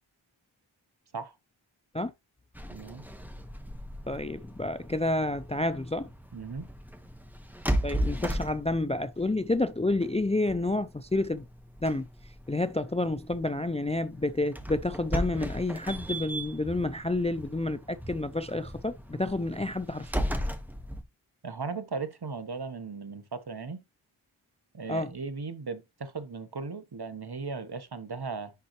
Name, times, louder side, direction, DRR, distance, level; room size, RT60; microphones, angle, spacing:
sound 1, 2.5-21.0, equal, 5° right, 1.2 m, -37 dB
voice 1, 2.7-3.0 6.3-6.7 21.4-23.8 24.7-28.5, right 4 dB, 50° right, 1.1 m, -37 dB
voice 2, 4.1-6.1 7.8-11.4 11.8-12.1 12.5-20.3 24.9-25.1, left 2 dB, 15° left, 0.4 m, -29 dB
10.5 x 3.9 x 3.0 m
wide cardioid pair, 55°, 49 cm